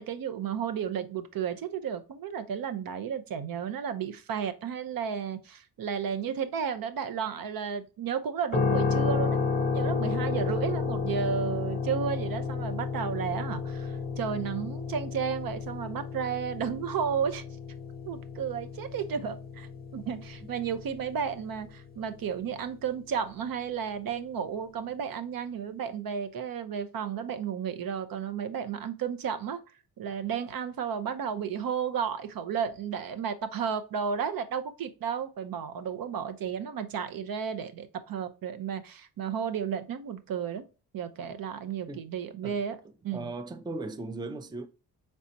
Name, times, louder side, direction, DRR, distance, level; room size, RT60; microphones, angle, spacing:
voice 1, 0.0-17.4 18.1-29.6 30.0-40.6 40.9-42.8 43.0-43.3, right 7 dB, 65° right, 0.6 m, -33 dB
sound 1, 8.5-22.5, left 5 dB, 25° left, 0.7 m, -32 dB
voice 2, 43.1-44.7, right 2 dB, 10° right, 0.4 m, -37 dB
4.0 x 3.4 x 2.6 m
cardioid pair, 75°, 38 cm